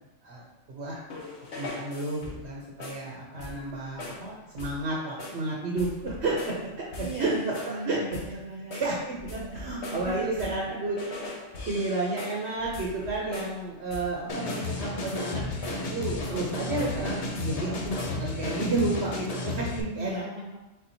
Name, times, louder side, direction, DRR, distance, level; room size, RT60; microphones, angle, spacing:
voice 1, 0.7-1.0 1.5-8.0 8.7-11.0 11.7-20.2, right 2 dB, 65° right, -3 dB, 1.1 m, -31 dB
sound 1, 1.1-2.5 2.8-3.1 3.4-3.7 4.0-4.3 4.6-4.9 5.2-5.5 5.8-6.6 6.9-7.8 8.1-8.4 8.7-10.7 11.0-13.6 13.9-14.2 14.5-14.8 15.1-16.4 16.8-17.5 17.8-18.3, left 2 dB, 70° left, 1.1 m, -41 dB
voice 2, 7.0-8.8 9.3-10.2 19.9-20.6, right 2 dB, 50° right, -3 dB, 0.5 m, -38 dB
sound 2, 14.3-19.8, left 3 dB, 50° left, 0.4 m, -33 dB
4.3 x 4.1 x 2.7 m, 1.0 s
omnidirectional pair, 1.2 m